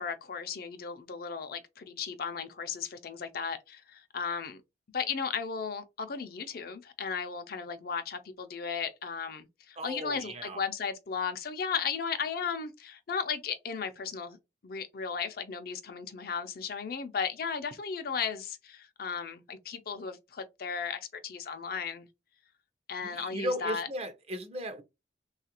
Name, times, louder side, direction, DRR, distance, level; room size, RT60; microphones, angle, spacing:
voice 1, 0.0-4.6 4.9-14.4 14.6-22.1 22.9-23.9, left 6 dB, 55° left, 0.5 m, -35 dB
voice 2, 9.8-10.6 23.0-24.8, equal, 35° right, 0.5 m, -36 dB
3.2 x 2.4 x 2.8 m
head